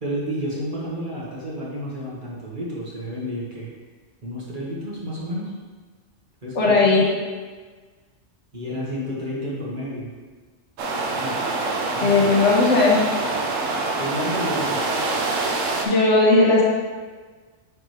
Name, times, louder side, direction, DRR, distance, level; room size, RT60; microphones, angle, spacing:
voice 1, 0.0-3.7 4.2-5.5 6.4-7.0 8.5-10.1 11.2-11.4 11.9-12.3 14.0-14.8, equal, 40° right, -6 dB, 1.6 m, -30 dB
voice 2, 6.5-7.0 12.0-13.1 15.8-16.6, left 3 dB, 70° left, -4 dB, 1.6 m, -17 dB
sound 1, 10.8-15.9, right 3 dB, 90° right, 1.1 m, -25 dB
9.5 x 3.7 x 3.2 m, 1.4 s
omnidirectional pair, 1.3 m